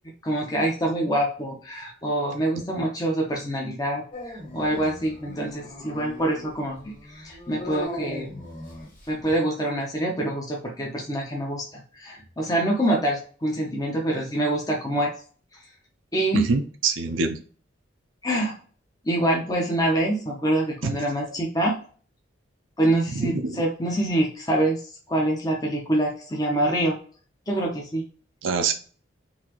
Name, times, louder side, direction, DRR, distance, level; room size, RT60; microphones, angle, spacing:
voice 1, 0.2-8.4 9.1-15.1 16.1-16.4 18.2-18.6 19.0-21.8 22.8-27.0 27.5-28.0, right 1 dB, 20° left, -1 dB, 0.7 m, -25 dB
voice 2, 2.6-2.9 16.3-17.4 20.8-21.0 23.1-23.6 28.4-28.7, right 4 dB, 85° right, 6 dB, 0.5 m, -25 dB
Dog, 4.1-9.2, left 1 dB, 45° left, 1.8 m, -39 dB
4.0 x 2.8 x 2.9 m, 0.41 s
head